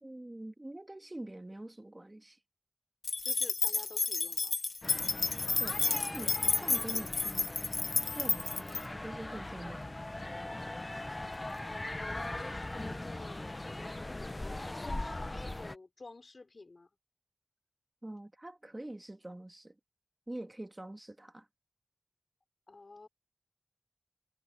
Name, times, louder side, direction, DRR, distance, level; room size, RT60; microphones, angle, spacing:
voice 1, 0.0-2.4 5.6-7.5 8.1-9.9 18.0-19.8 20.3-21.5, right 1 dB, 30° right, 2.0 m, -45 dB
sound 1, 3.0-8.8, left 4 dB, 85° left, 1.0 m, -31 dB
voice 2, 3.2-4.5 11.6-13.5 14.1-16.9 22.7-23.1, left 3 dB, 65° left, 6.0 m, -51 dB
sound 2, 4.8-15.8, left 2 dB, 35° left, 0.8 m, -40 dB
wide cardioid pair, 60°, 0 cm